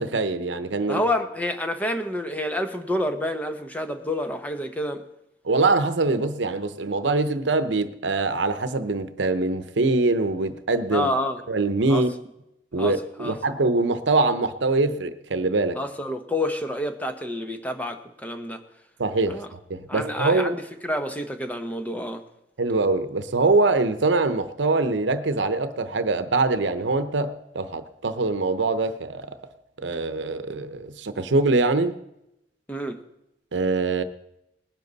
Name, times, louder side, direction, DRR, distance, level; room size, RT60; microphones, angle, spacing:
voice 1, 0.0-1.0 5.4-11.1 11.5-12.1 12.7-15.8 19.0-20.6 22.6-29.3 29.8-32.0 33.5-34.0, right 3 dB, 85° right, 0.8 m, -23 dB
voice 2, 0.9-5.0 10.9-11.4 11.9-12.1 12.8-13.4 15.8-18.6 19.3-19.5 19.9-22.2 32.7-33.0, left 1 dB, 10° left, 0.9 m, -28 dB
19.5 x 10.5 x 4.0 m
head